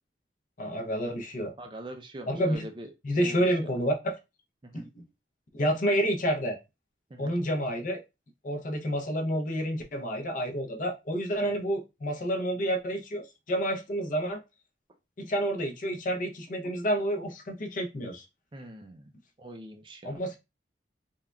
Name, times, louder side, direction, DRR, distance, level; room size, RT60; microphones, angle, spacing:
voice 1, 0.6-1.5 2.3-2.7 3.0-4.2 4.7-5.0 5.5-6.6 7.2-8.0 8.4-14.4 15.2-18.3 20.0-20.4, equal, 45° left, 3 dB, 0.6 m, -29 dB
voice 2, 1.6-2.9 3.2-3.7 4.6-4.9 7.1-7.4 18.5-19.1 19.4-20.2, right 1 dB, 25° right, 5 dB, 0.4 m, -43 dB
3.6 x 2.1 x 2.2 m, 0.25 s
head